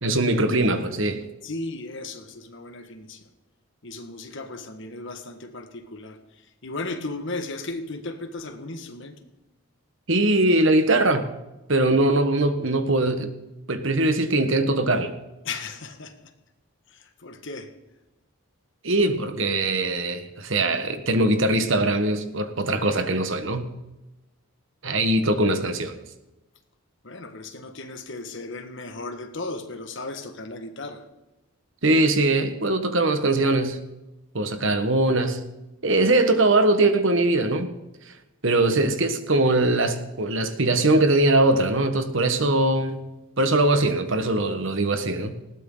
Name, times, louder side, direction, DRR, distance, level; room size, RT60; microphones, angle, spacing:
voice 1, 0.0-1.2 10.1-11.2 11.7-13.3 13.7-15.1 18.8-23.7 24.8-25.9 31.8-33.8 34.3-35.4 35.8-37.7 38.4-43.0 43.4-45.3, right 2 dB, 55° right, 8 dB, 1.4 m, -21 dB
voice 2, 1.4-3.3 3.8-9.1 15.4-16.3 16.9-17.7 27.0-31.1, left 2 dB, 55° left, 7 dB, 1.6 m, -36 dB
19.5 x 16.5 x 3.9 m, 0.98 s
head